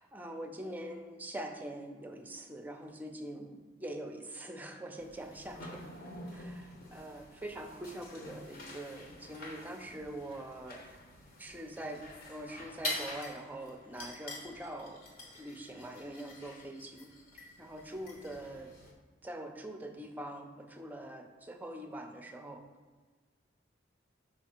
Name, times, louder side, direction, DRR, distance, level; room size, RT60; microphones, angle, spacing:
voice 1, 0.0-11.0 11.4-15.0 15.3-18.7 19.2-22.6, right 1 dB, 10° right, 4 dB, 0.6 m, -44 dB
sound 1, 5.0-18.9, left 1 dB, 55° left, 1.0 m, -46 dB
5.7 x 4.9 x 4.4 m, 1.4 s
head